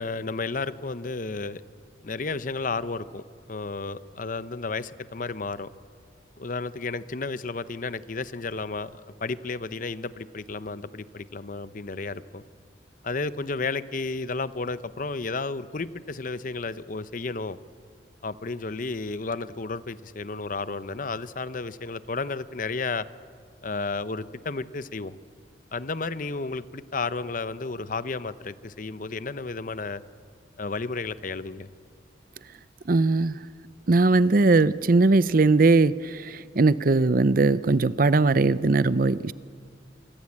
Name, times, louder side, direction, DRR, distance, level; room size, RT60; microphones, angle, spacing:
voice 1, 0.0-1.6 2.0-3.2 3.5-5.7 6.4-8.9 9.2-12.4 13.0-17.6 18.2-23.1 23.6-25.2 25.7-30.0 30.6-31.7, left 3 dB, 45° left, 14 dB, 0.8 m, -32 dB
voice 2, 32.9-33.4 33.9-39.3, right 3 dB, 50° right, 17 dB, 0.6 m, -20 dB
27.0 x 24.0 x 8.6 m, 2.1 s
head